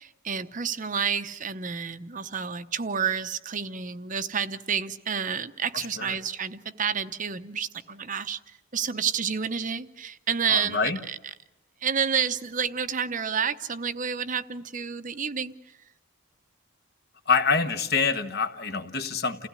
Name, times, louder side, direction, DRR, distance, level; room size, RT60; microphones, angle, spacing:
voice 1, 0.0-8.4 8.7-11.2 11.8-15.5, right 7 dB, 40° right, 11 dB, 0.8 m, -29 dB
voice 2, 10.5-11.0 17.3-19.5, left 5 dB, 50° left, 8 dB, 1.3 m, -26 dB
29.5 x 16.0 x 9.7 m, 0.99 s
head